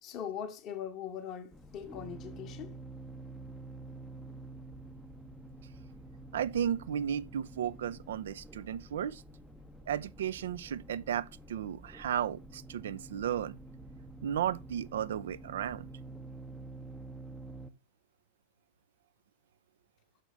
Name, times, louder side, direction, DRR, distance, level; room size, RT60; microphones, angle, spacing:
voice 1, 0.0-2.8, left 8 dB, 35° left, 0.8 m, -41 dB
sound 1, 1.5-17.7, right 2 dB, ahead, 0.6 m, -48 dB
voice 2, 6.3-9.2 9.9-13.6 14.2-15.9, right 9 dB, 60° right, 0.4 m, -34 dB
6.5 x 4.9 x 3.8 m
figure-of-eight pair, 90°, 0 cm